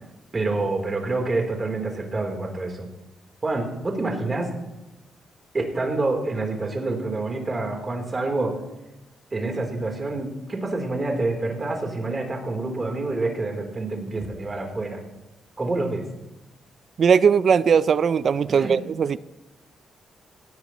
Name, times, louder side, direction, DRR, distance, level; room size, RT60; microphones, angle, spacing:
voice 1, 0.3-2.9 3.4-4.5 5.5-8.6 9.3-15.0 15.6-16.0 18.5-18.8, right 2 dB, 30° right, 2 dB, 3.6 m, -27 dB
voice 2, 17.0-19.2, right 6 dB, 55° right, 17 dB, 0.4 m, -19 dB
18.0 x 18.0 x 3.1 m, 0.99 s
cardioid pair, 110°, 0 cm